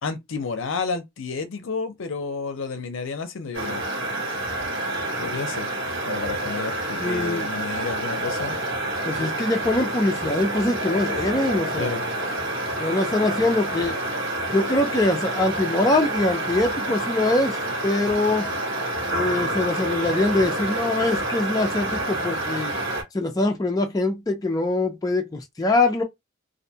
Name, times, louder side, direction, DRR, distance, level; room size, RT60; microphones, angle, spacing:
voice 1, 0.0-3.8 5.2-5.7 6.0-8.6 11.8-12.0, left 4 dB, 65° left, 0.5 m, -31 dB
sound 1, 3.5-23.0, right 1 dB, 60° right, 1.2 m, -28 dB
voice 2, 7.0-7.5 9.1-12.0 12.8-14.0 14.5-17.6 17.8-18.5 19.1-22.7 23.1-26.0, left 2 dB, 20° left, 0.4 m, -23 dB
2.5 x 2.2 x 2.7 m
head